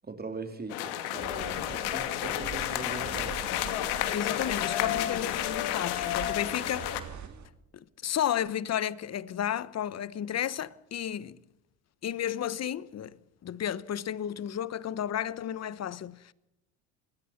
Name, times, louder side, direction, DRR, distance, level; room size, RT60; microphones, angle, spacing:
voice 1, 0.0-1.4 1.7-3.5 7.3-7.4, right 3 dB, 25° right, 3.4 m, -41 dB
sound 1, 0.7-7.0, left 12 dB, 75° left, 2.4 m, -31 dB
sound 2, 1.2-7.5, right 7 dB, 45° right, 2.6 m, -45 dB
voice 2, 4.1-7.0 7.7-11.4 12.0-13.2 13.4-16.3, left 10 dB, 40° left, 1.1 m, -32 dB
26.5 x 20.0 x 5.9 m
supercardioid pair, 80°, 40 cm